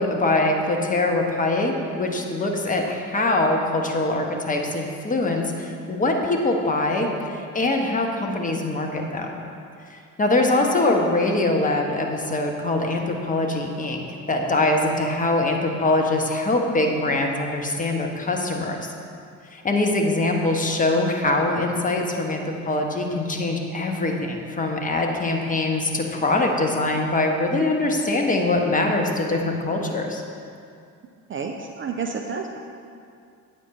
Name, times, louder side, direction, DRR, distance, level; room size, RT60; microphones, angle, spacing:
voice 1, 0.0-9.3 10.2-18.9 19.5-30.2, left 2 dB, 15° left, 2 dB, 1.1 m, -23 dB
voice 2, 31.3-32.6, right 5 dB, 25° right, 3 dB, 0.6 m, -30 dB
8.3 x 7.4 x 4.3 m, 2.4 s
figure-of-eight pair, 50°, 47 cm